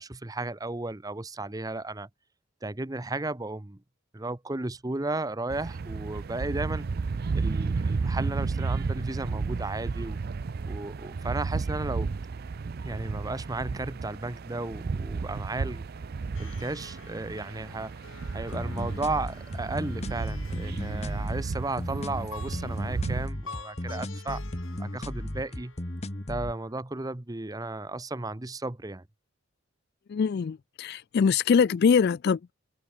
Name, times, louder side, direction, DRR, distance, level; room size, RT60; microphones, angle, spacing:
voice 1, 0.0-2.1 2.6-3.8 4.1-6.9 7.3-10.2 10.7-12.1 12.8-15.8 16.4-17.9 18.3-24.4 24.8-25.7 26.3-29.0, right 2 dB, 15° right, 0.8 m, -34 dB
sound 1, 5.5-23.3, right 4 dB, 45° right, 0.4 m, -33 dB
Plucked string instrument, 16.3-26.7, left 4 dB, 70° left, 5.6 m, -49 dB
sound 2, 18.5-26.5, left 1 dB, 30° left, 1.6 m, -35 dB
voice 2, 30.1-32.5, left 6 dB, 50° left, 0.3 m, -23 dB
head